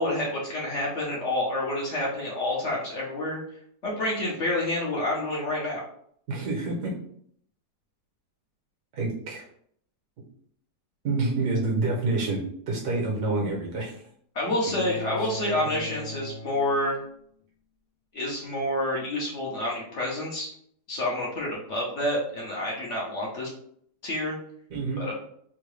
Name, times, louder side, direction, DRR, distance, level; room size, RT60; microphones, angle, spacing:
voice 1, 0.0-3.4 3.8-5.8 14.3-17.0 18.1-20.5 20.9-23.5 24.0-24.4 25.0-25.1, left 1 dB, 55° left, -4 dB, 1.0 m, -28 dB
voice 2, 6.3-6.9 8.9-9.5 11.0-14.0 15.2-15.3 15.6-15.7 24.7-25.0, right 3 dB, 75° right, -1 dB, 1.5 m, -28 dB
sound 1, 14.6-17.2, left 2 dB, 90° left, 0.5 m, -39 dB
3.7 x 2.2 x 3.2 m, 0.64 s
omnidirectional pair, 1.8 m